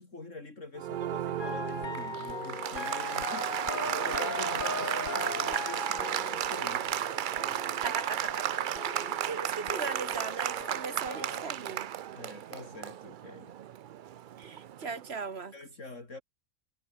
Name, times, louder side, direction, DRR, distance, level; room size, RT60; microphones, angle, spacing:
voice 1, 0.0-6.9 12.1-13.5 15.5-16.2, left 3 dB, 60° left, 4.1 m, -46 dB
Applause, 0.8-15.1, right 11 dB, 85° right, 0.4 m, -34 dB
sound 1, 1.4-9.4 9.7-11.4, left 4 dB, 35° left, 1.5 m, -39 dB
voice 2, 2.3-3.2 7.8-8.5 8.8-11.9 14.4-15.6, right 5 dB, 50° right, 1.7 m, -39 dB
omnidirectional pair, 1.5 m